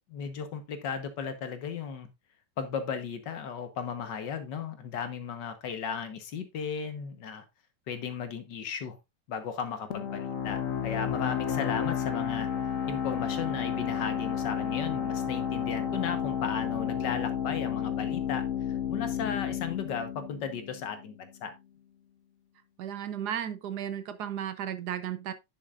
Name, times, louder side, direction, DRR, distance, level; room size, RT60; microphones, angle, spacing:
voice 1, 0.0-2.1 2.6-7.5 7.9-9.0 9.3-12.5 12.9-18.5 18.9-21.5, left 6 dB, 75° left, 1.8 m, -35 dB
sound 1, 9.9-21.3, left 8 dB, 55° left, 1.1 m, -32 dB
voice 2, 22.8-25.3, right 10 dB, 70° right, 1.3 m, -34 dB
10.5 x 6.5 x 2.5 m
omnidirectional pair, 1.9 m